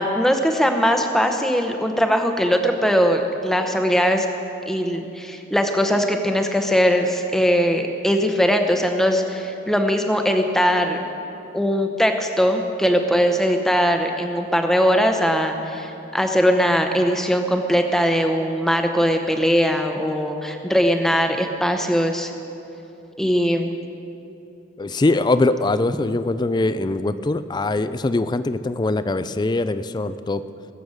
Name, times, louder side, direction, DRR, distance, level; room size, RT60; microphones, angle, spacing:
voice 1, 0.0-4.3 4.7-11.1 11.5-22.3 23.2-23.7, equal, ahead, 4 dB, 0.8 m, -20 dB
voice 2, 24.8-30.4, left 2 dB, 25° left, 13 dB, 0.4 m, -22 dB
21.0 x 7.0 x 6.4 m, 2.8 s
head